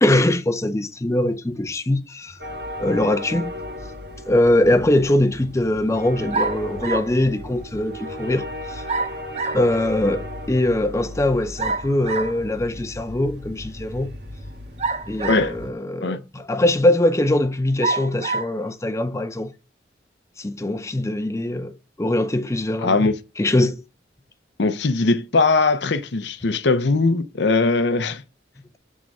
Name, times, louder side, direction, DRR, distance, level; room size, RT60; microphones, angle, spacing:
voice 1, 0.0-2.4 2.8-3.5 4.3-8.8 9.5-14.1 15.1-19.5 20.4-23.1 23.4-23.8, left 1 dB, 15° left, 0.5 m, -22 dB
sound 1, 2.4-15.7, left 1 dB, 60° right, 1.5 m, -36 dB
sound 2, 6.3-7.2 8.9-9.7 11.6-12.4 14.8-15.7 16.4-16.5 17.8-18.5, right 3 dB, 35° right, 0.6 m, -26 dB
voice 2, 22.8-23.2 24.6-28.2, left 3 dB, 70° left, 0.7 m, -20 dB
7.5 x 3.7 x 5.3 m
head